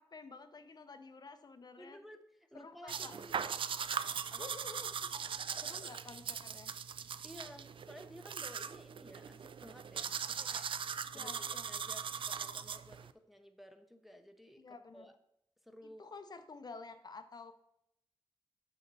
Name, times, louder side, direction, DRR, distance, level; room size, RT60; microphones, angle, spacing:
voice 1, 0.0-2.0 2.5-3.1 4.4-5.1 5.6-6.7 11.1-11.7 14.6-15.1 16.0-17.5, left 4 dB, 45° left, 9 dB, 0.5 m, -51 dB
voice 2, 1.8-3.6 4.3-4.5 7.2-10.7 11.1-15.2 15.6-16.1, equal, ahead, 6 dB, 0.6 m, -55 dB
sound 1, 2.9-13.1, right 7 dB, 60° right, 0.4 m, -40 dB
8.6 x 5.6 x 4.0 m, 0.79 s
wide cardioid pair, 145°, 10 cm